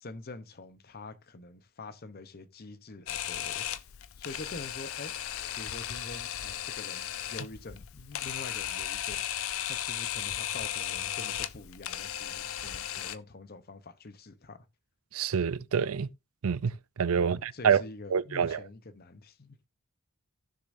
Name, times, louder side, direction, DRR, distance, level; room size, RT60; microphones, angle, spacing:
voice 1, 0.0-3.7 4.2-5.1 5.6-14.7 17.2-19.6, left 2 dB, 45° left, 0.8 m, -46 dB
Camera, 3.1-13.2, left 11 dB, 70° left, 0.6 m, -36 dB
voice 2, 15.1-16.1 16.4-16.7 17.0-17.8 18.1-18.6, right 7 dB, 75° right, 0.5 m, -26 dB
15.0 x 6.7 x 2.6 m
head